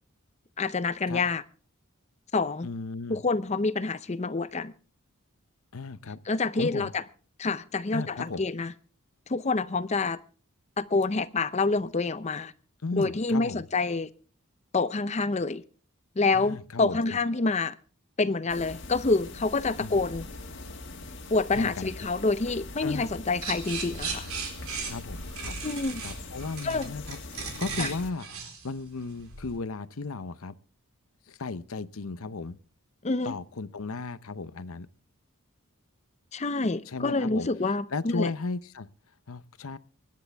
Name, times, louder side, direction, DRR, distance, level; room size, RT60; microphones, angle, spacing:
voice 1, 0.6-1.4 2.3-2.7 3.1-4.7 6.3-7.0 7.4-8.7 9.3-10.2 10.8-12.5 12.9-14.1 14.7-15.6 16.2-17.7 18.2-20.3 21.3-24.3 25.6-26.0 26.6-26.9 27.8-27.9 33.0-33.3 36.3-38.3, left 3 dB, 30° left, 0.6 m, -27 dB
voice 2, 2.6-3.2 5.7-6.2 6.6-6.9 7.9-8.4 12.8-13.6 16.3-17.0 19.8-20.0 21.5-22.1 22.8-23.1 24.9-25.6 26.0-27.2 27.6-30.5 31.3-32.6 33.2-34.9 36.9-37.5 37.9-38.9 39.3-39.8, left 3 dB, 75° left, 0.7 m, -35 dB
sound 1, 18.5-28.1, left 2 dB, 55° left, 1.9 m, -42 dB
sound 2, 23.4-29.6, right 5 dB, 80° right, 4.1 m, -37 dB
25.0 x 10.5 x 3.4 m
head